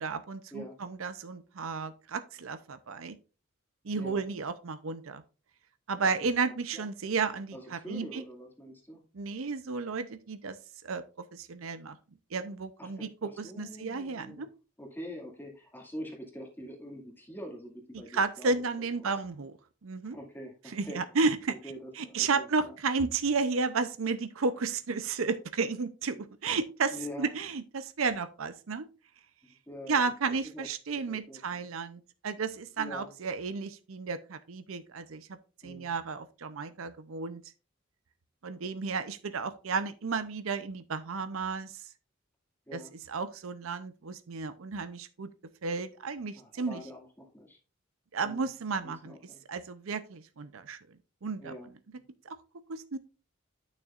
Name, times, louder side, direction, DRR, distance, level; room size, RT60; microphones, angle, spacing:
voice 1, 0.0-3.2 3.8-5.2 5.9-8.2 9.1-10.6 10.8-11.0 11.3-12.0 12.3-14.5 18.1-19.5 19.8-20.2 20.7-21.6 22.0-28.9 29.9-35.4 35.6-37.4 38.4-41.8 42.7-42.8 43.1-45.3 45.6-46.8 48.1-49.1 49.5-50.8 51.2-51.5 52.2-52.4 52.7-53.0, right 4 dB, 70° right, 0.6 m, -33 dB
voice 2, 7.5-9.0 12.8-14.5 14.8-19.1 20.0-21.0 21.5-22.8 26.1-26.2 26.9-27.3 29.4-30.0 30.5-30.7 31.1-31.6 32.8-33.1 35.6-35.9 42.7-42.9 46.3-47.6 48.2-48.5 48.8-49.4 51.4-51.7, equal, 10° left, 2.1 m, -45 dB
9.1 x 6.3 x 2.4 m
head